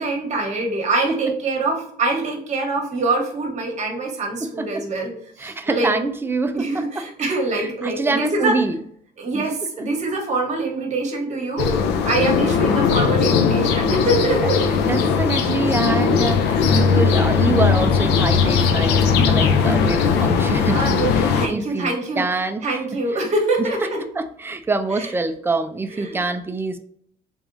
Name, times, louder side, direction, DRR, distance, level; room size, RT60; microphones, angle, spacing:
voice 1, 0.0-5.1 5.4-5.9 6.5-8.6 9.2-11.7 12.0-14.6 20.7-22.2 22.6-24.0 25.0-25.1 25.9-26.2, right 2 dB, 45° right, 1 dB, 1.2 m, -24 dB
voice 2, 4.4-4.8 5.4-6.7 7.0-7.1 7.5-8.8 9.3-9.4 9.8-9.9 14.8-21.9 22.2-23.2 23.6-23.7 24.1-26.8, right 3 dB, 15° right, 8 dB, 0.4 m, -25 dB
sound 1, 11.6-21.5, left 6 dB, 85° left, 0.5 m, -18 dB
3.5 x 3.5 x 2.6 m, 0.65 s
cardioid pair, 110°, 17 cm